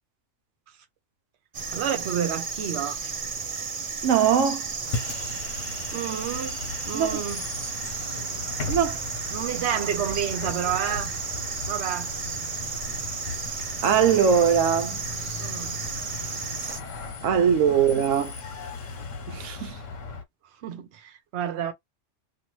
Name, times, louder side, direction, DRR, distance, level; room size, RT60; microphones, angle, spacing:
sound 1, 1.5-16.8, right 5 dB, 40° right, 0.5 m, -33 dB
voice 1, 1.7-3.0 5.9-6.6 6.9-7.4 9.3-11.1 11.7-12.1 15.4-15.7 17.7-17.8 20.6-21.7, right 9 dB, 65° right, 1.0 m, -29 dB
voice 2, 4.0-4.7 6.9-7.2 8.7-9.0 13.8-15.0 17.2-18.3 19.3-19.8, right 7 dB, 90° right, 1.0 m, -21 dB
Bus, 4.8-20.2, left 4 dB, 80° left, 1.2 m, -37 dB
2.6 x 2.6 x 3.0 m
omnidirectional pair, 1.3 m